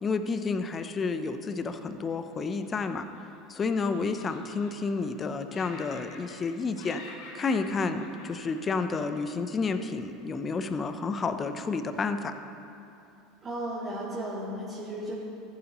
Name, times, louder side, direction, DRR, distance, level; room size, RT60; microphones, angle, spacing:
voice 1, 0.0-3.1 3.5-7.0 7.3-12.3, left 4 dB, 30° left, 8 dB, 0.6 m, -30 dB
Laughter, 2.3-3.5 3.9-5.2 5.5-6.5 6.7-9.3, left 3 dB, 75° left, 2.1 m, -48 dB
voice 2, 13.4-15.1, right 1 dB, 30° right, -7 dB, 2.0 m, -34 dB
14.5 x 8.7 x 3.0 m, 2.8 s
hypercardioid pair, 100°, 0 cm